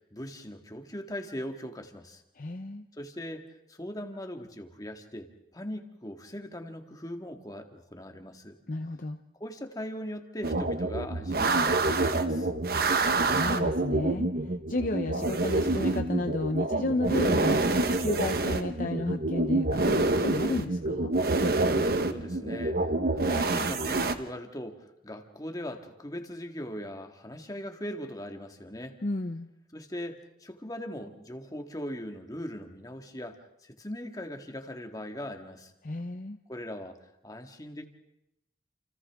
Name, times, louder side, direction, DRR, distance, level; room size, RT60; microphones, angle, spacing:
voice 1, 0.0-2.2 2.9-8.6 9.4-12.5 21.8-29.0 29.7-35.7 36.5-37.0 37.2-37.9, equal, 20° left, 4 dB, 1.8 m, -40 dB
voice 2, 2.4-2.9 8.7-9.2 13.2-21.1 29.0-29.5 35.8-36.4, left 2 dB, 50° left, 5 dB, 0.8 m, -33 dB
sound 1, 10.4-24.1, right 2 dB, 55° right, 1.1 m, -27 dB
29.5 x 29.0 x 3.6 m, 0.86 s
head